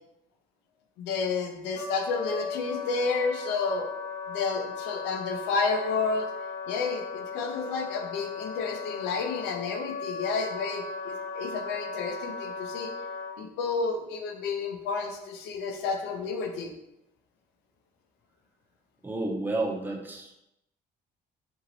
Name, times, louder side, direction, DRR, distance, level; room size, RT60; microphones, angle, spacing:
voice 1, 1.0-3.9 4.3-6.3 6.7-12.9 13.4-16.7, left 4 dB, 85° left, 3 dB, 0.5 m, -31 dB
Wind instrument woodwind instrument, 1.7-13.3, left 5 dB, 35° left, 0.7 m, -37 dB
voice 2, 19.0-20.3, right 2 dB, 10° right, 0 dB, 0.5 m, -31 dB
2.9 x 2.7 x 2.7 m, 0.87 s
cardioid pair, 110°, 17 cm